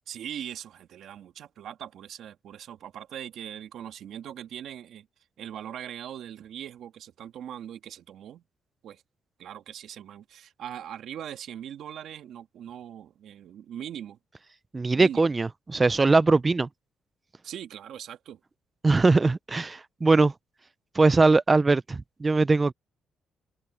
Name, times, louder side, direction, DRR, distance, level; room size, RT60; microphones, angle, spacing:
voice 1, 0.1-5.1 5.4-8.4 8.8-9.0 9.4-14.2 14.9-15.3 17.4-18.4, right 10 dB, 70° right, 1.8 m, -40 dB
voice 2, 14.7-16.7 18.8-20.3 20.9-22.7, right 3 dB, 25° right, 0.5 m, -21 dB
open air
cardioid pair, 90°, 0 cm